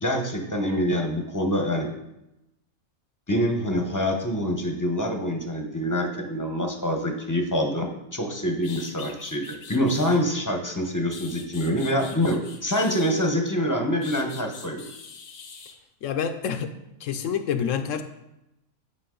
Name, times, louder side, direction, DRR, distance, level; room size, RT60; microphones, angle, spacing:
voice 1, 0.0-1.9 3.3-14.9, equal, 15° left, 2 dB, 0.8 m, -26 dB
sound 1, 8.2-8.3 8.6-10.2 10.8-13.5 14.0-15.8, left 5 dB, 90° left, 1.5 m, -43 dB
voice 2, 16.0-16.7 17.0-18.0, left 7 dB, 70° left, 9 dB, 0.9 m, -27 dB
9.6 x 5.7 x 3.8 m, 0.89 s
omnidirectional pair, 1.5 m